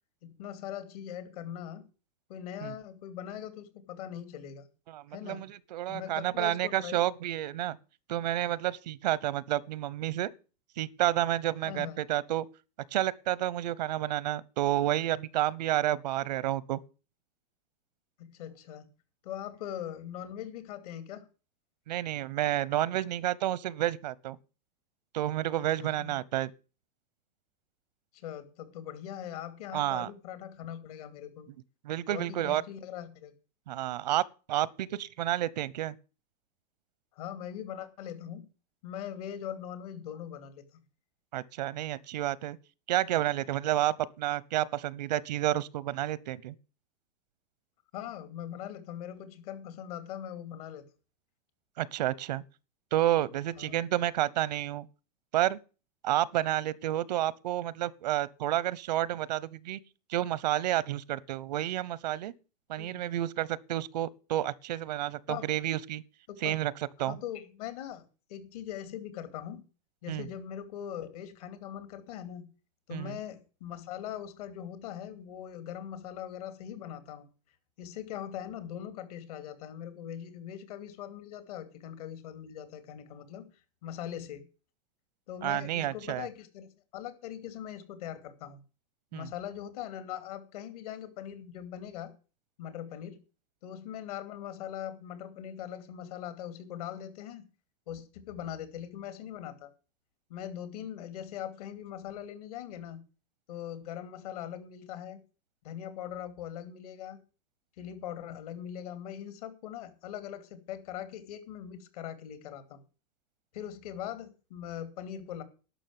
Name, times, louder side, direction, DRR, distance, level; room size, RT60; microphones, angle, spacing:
voice 1, 0.2-1.8 2.3-4.7 5.1-5.5 5.9-7.0 11.6-12.0 18.2-18.9 19.2-21.2 25.8-26.1 28.1-31.5 32.1-33.3 37.2-38.5 38.8-40.8 43.8-43.9 47.9-50.8 53.5-53.8 62.8-63.1 65.3-65.4 66.3-66.6 67.0-69.6 70.0-72.4 72.9-77.3 77.8-83.4 83.8-84.4 85.3-88.6 89.1-92.1 92.6-93.2 93.6-97.4 97.9-99.7 100.3-103.0 103.5-105.2 105.6-107.2 107.8-112.8 113.5-115.4, left 10 dB, 65° left, 2.7 m, -41 dB
voice 2, 4.9-7.8 8.1-10.3 10.8-12.5 12.9-16.8 21.9-24.4 25.1-26.5 29.7-30.1 31.8-32.6 33.7-35.9 41.3-42.6 42.9-46.5 51.8-52.4 52.9-54.9 55.3-55.6 56.0-59.8 60.1-62.3 62.7-66.0 66.4-66.7 67.0-67.2 70.1-70.3 72.9-73.2 85.4-86.3 89.1-89.3, right 13 dB, 85° right, 0.9 m, -30 dB
11.5 x 6.3 x 9.3 m
supercardioid pair, 165°, 21 cm